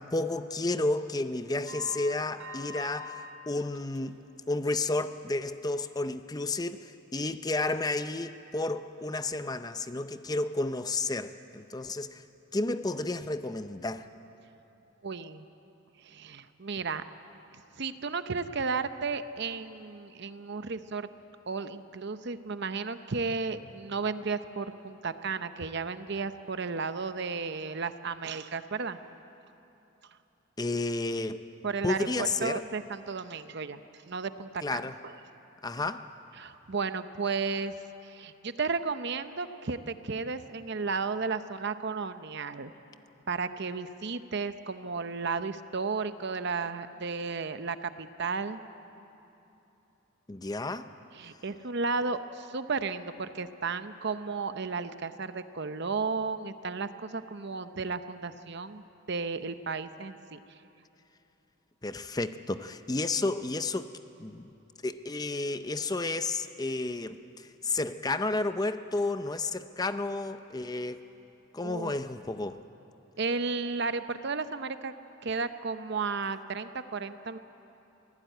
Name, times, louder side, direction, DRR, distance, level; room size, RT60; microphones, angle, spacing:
voice 1, 0.0-4.2 4.5-12.2 12.5-14.1 30.6-31.4 31.8-32.6 34.6-35.0 35.6-36.1 50.3-50.9 61.8-63.9 64.2-64.5 64.8-71.0 71.5-72.6, left 2 dB, 20° left, 11 dB, 0.5 m, -31 dB
sound 1, 1.7-3.2 3.6-4.2 4.6-4.8 5.3-5.4, left 1 dB, 80° right, 2.7 m, -44 dB
voice 2, 15.0-15.5 16.0-17.0 17.7-21.1 21.5-29.0 31.6-33.8 34.1-35.1 36.4-37.7 38.0-42.7 43.3-48.6 51.1-60.4 71.6-72.0 73.2-74.9 75.2-77.4, right 4 dB, 55° right, 11 dB, 0.8 m, -33 dB
23.5 x 16.5 x 9.2 m, 3.0 s
head